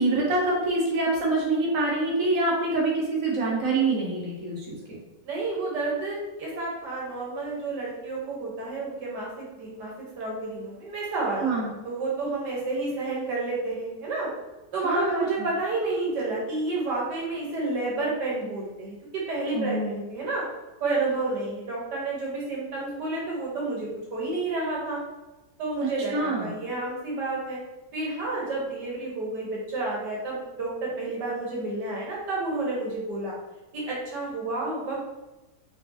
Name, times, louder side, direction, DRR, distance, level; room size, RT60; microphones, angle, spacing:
voice 1, 0.0-5.0 11.4-11.7 14.8-15.5 19.5-20.0 26.1-26.5, right 2 dB, 50° right, -4 dB, 1.5 m, -25 dB
voice 2, 5.2-11.5 11.8-14.3 14.7-20.4 20.8-25.0 25.6-27.6 27.9-33.3 33.7-35.0, right 3 dB, 80° right, -4 dB, 1.7 m, -30 dB
5.0 x 3.2 x 2.8 m, 1.1 s
omnidirectional pair, 1.8 m